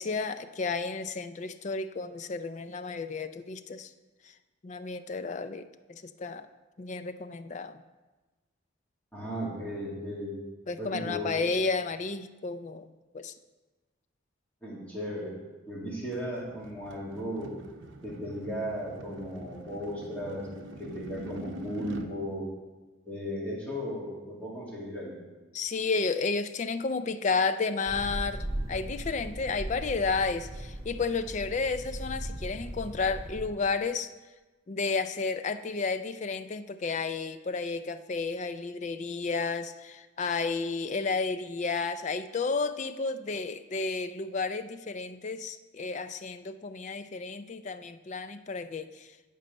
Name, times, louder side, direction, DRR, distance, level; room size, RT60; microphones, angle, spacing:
voice 1, 0.0-3.9 4.2-4.3 4.6-6.5 6.8-7.8 10.7-13.3 25.5-34.1 34.7-49.2, left 4 dB, 35° left, 12 dB, 0.4 m, -32 dB
voice 2, 9.1-10.4 10.8-11.3 14.6-15.3 15.7-17.5 18.0-20.4 20.8-22.5 23.1-25.2, equal, 5° left, -6 dB, 2.1 m, -36 dB
sound 1, 16.1-22.1, right 1 dB, 65° right, 0.8 m, -44 dB
sound 2, 27.9-33.5, right 1 dB, 25° right, 1.5 m, -38 dB
10.5 x 5.4 x 5.3 m, 1.2 s
head